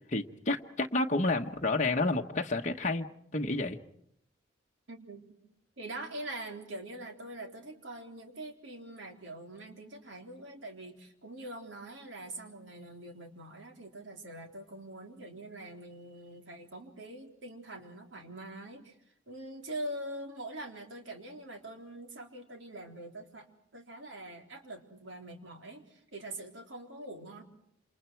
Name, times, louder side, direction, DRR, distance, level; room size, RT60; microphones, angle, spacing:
voice 1, 0.1-3.1 3.3-3.8, left 2 dB, 35° left, 2 dB, 1.1 m, -30 dB
voice 2, 4.9-5.2 5.8-18.9 19.3-23.5 23.7-27.4, right 1 dB, 75° right, 3 dB, 3.7 m, -44 dB
28.0 x 27.5 x 4.6 m, 0.72 s
head